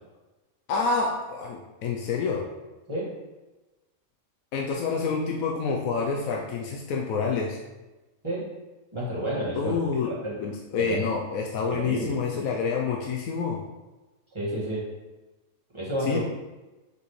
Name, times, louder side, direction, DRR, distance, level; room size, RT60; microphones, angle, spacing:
voice 1, 0.7-2.5 4.5-7.6 9.6-10.1 10.4-13.6 16.0-16.2, left 5 dB, 75° left, 0 dB, 1.1 m, -28 dB
voice 2, 8.9-9.8 10.0-10.4 10.8-11.0 11.7-12.2 14.3-14.9 15.7-16.2, right 1 dB, 20° right, -7 dB, 1.8 m, -30 dB
6.2 x 5.2 x 3.2 m, 1.1 s
omnidirectional pair, 1.5 m